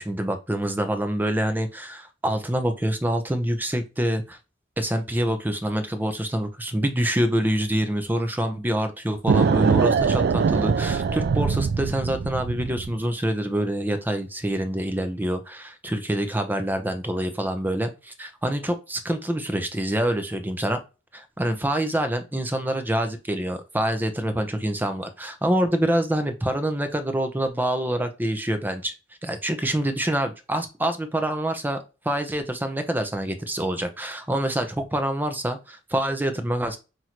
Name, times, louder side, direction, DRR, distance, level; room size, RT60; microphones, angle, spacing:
voice 1, 0.0-4.4 4.8-20.8 21.1-28.9 29.2-31.8 32.0-36.8, right 1 dB, 10° right, 8 dB, 0.6 m, -26 dB
sound 1, 9.3-13.0, right 5 dB, 60° right, 0.3 m, -22 dB
5.8 x 2.6 x 2.9 m, 0.29 s
head